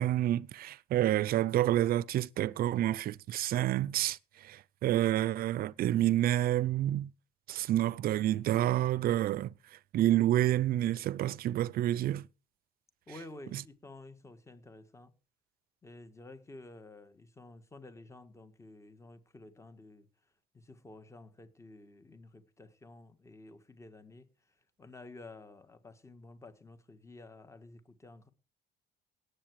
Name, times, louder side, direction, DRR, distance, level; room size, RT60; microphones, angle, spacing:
voice 1, 0.0-4.2 4.4-7.1 7.5-9.5 9.9-12.2 13.5-13.6, right 13 dB, 60° right, 0.6 m, -28 dB
voice 2, 13.1-15.1 15.8-20.1 20.5-28.3, left 2 dB, 15° left, 1.6 m, -52 dB
17.5 x 8.1 x 4.8 m
cardioid pair, 110°, 17 cm